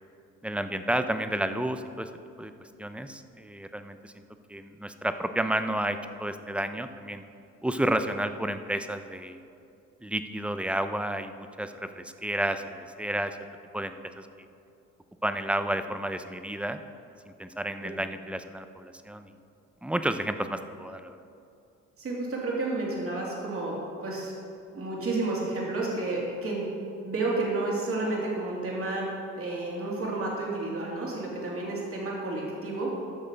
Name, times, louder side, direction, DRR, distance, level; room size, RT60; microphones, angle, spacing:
voice 1, 0.4-2.1 2.4-2.5 2.8-4.1 4.5-7.2 7.6-9.4 10.0-13.4 13.7-14.3 15.2-16.8 17.3-19.3 19.8-21.2, right 1 dB, 5° right, 9 dB, 0.5 m, -31 dB
voice 2, 22.0-24.3 24.7-26.7 27.0-29.1 29.4-32.9, right 2 dB, 50° right, -4 dB, 2.8 m, -31 dB
12.5 x 6.6 x 5.1 m, 2.6 s
cardioid pair, 90°, 30 cm